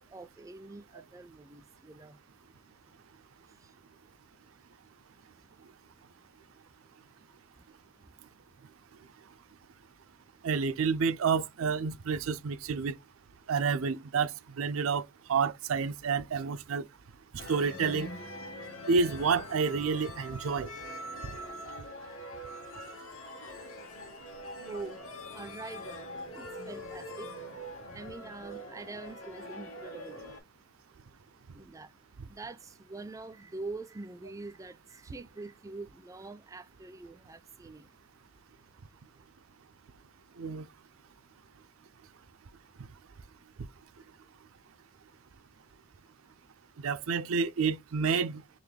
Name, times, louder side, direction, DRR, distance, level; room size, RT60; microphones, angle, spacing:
voice 1, 0.0-2.2 2.9-3.0 3.4-3.9 5.0-5.5 6.6-6.7 7.1-8.3 24.7-27.5 27.9-30.3 31.5-37.9, right 3 dB, 15° right, 0.3 m, -45 dB
voice 2, 10.4-12.9 13.5-16.9 17.5-18.1 18.9-20.7 40.4-40.7 46.8-48.4, right 5 dB, 80° right, 0.5 m, -29 dB
sound 1, 17.4-30.4, equal, 80° left, 1.5 m, -43 dB
4.0 x 3.0 x 3.2 m
head